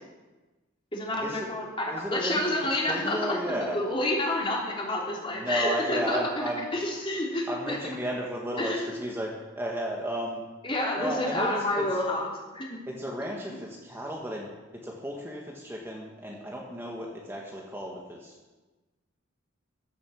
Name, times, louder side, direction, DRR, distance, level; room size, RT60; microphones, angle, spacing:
voice 1, 0.9-7.8 8.6-9.0 10.6-12.7, left 1 dB, 25° left, -2 dB, 3.3 m, -29 dB
voice 2, 1.9-2.4 2.9-3.8 5.3-6.7 7.5-8.7 9.0-10.4 11.0-11.8 12.9-14.5 14.8-18.3, equal, 10° right, -2 dB, 1.7 m, -33 dB
14.0 x 8.5 x 7.2 m, 1.2 s
head